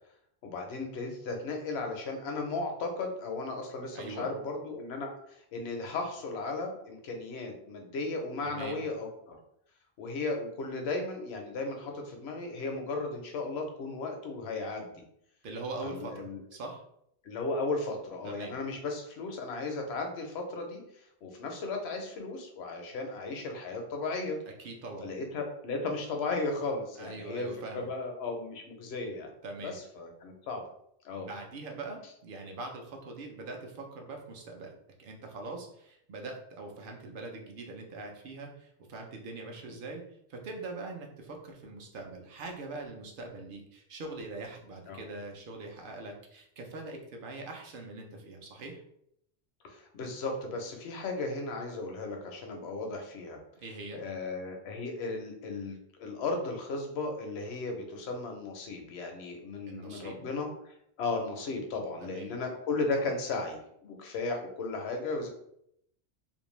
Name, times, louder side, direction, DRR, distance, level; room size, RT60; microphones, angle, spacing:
voice 1, 0.4-9.4 10.0-15.0 15.8-16.4 17.2-24.4 25.0-27.5 27.7-29.3 29.6-30.6 31.0-31.3 39.7-39.8 44.9-45.0 49.6-53.4 53.9-65.3, left 3 dB, 75° left, 3 dB, 0.8 m, -35 dB
voice 2, 3.9-4.3 8.4-8.8 15.4-16.2 16.5-16.8 18.2-18.6 24.6-25.1 27.0-27.9 29.4-29.8 31.2-34.7 35.0-48.8 53.6-54.0 59.7-60.2 62.0-62.3, right 3 dB, 60° right, 2 dB, 0.7 m, -42 dB
2.5 x 2.1 x 3.0 m, 0.74 s
omnidirectional pair, 1.1 m